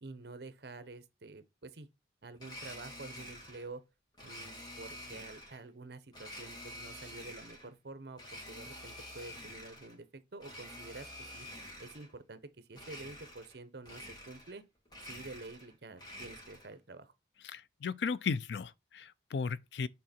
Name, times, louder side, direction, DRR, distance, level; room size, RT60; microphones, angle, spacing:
voice 1, 0.0-1.9 2.2-3.8 4.2-11.5 11.8-14.6 15.0-17.1, right 3 dB, 65° right, 0.8 m, -49 dB
Domestic sounds home sounds, 2.4-3.7 4.2-5.6 6.1-7.7 8.1-10.0 10.4-12.1 12.7-13.6 13.8-14.6 14.9-16.7, left 1 dB, 25° left, 1.9 m, -48 dB
voice 2, 17.4-19.9, left 5 dB, 75° left, 0.4 m, -36 dB
7.5 x 3.7 x 4.2 m
head